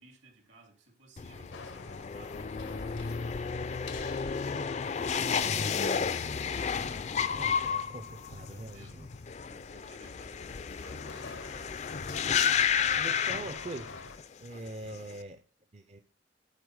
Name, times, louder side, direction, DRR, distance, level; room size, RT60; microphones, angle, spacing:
voice 1, 0.0-5.6 8.1-9.0 9.4-11.8 14.8-15.1, right 2 dB, 75° right, 2 dB, 3.0 m, -58 dB
sound 1, 1.2-14.2 14.5-15.1, left 7 dB, 35° left, 0.4 m, -32 dB
sound 2, 1.5-14.2, left 4 dB, 80° left, 0.8 m, -49 dB
voice 2, 7.4-9.1 13.0-14.0 14.4-15.4 15.7-16.0, right 2 dB, 35° right, 7 dB, 0.5 m, -43 dB
8.2 x 4.6 x 6.2 m, 0.41 s
head